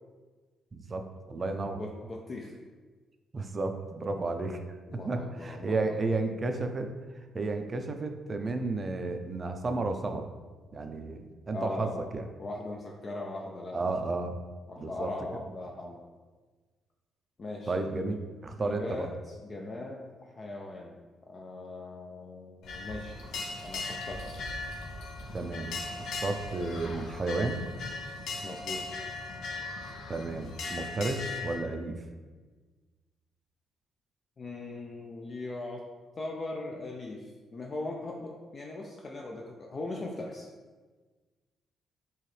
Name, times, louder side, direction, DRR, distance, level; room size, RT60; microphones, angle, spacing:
voice 1, 0.7-1.8 3.3-4.6 5.0-6.9 7.3-10.3 10.7-12.2 13.7-14.4 14.8-15.1 17.7-19.1 25.3-27.6 30.1-32.0, right 3 dB, 35° right, 6 dB, 0.4 m, -32 dB
voice 2, 1.4-2.5 4.9-6.0 11.5-12.0 12.4-14.1 14.7-16.0 17.4-18.0 18.6-23.2 23.6-24.2 28.4-28.8 34.4-35.8 36.2-40.5, left 2 dB, 40° left, -1 dB, 0.4 m, -39 dB
sound 1, 22.6-31.6, left 3 dB, 75° left, 0.7 m, -38 dB
4.6 x 3.0 x 3.2 m, 1.4 s
cardioid pair, 90°, 0 cm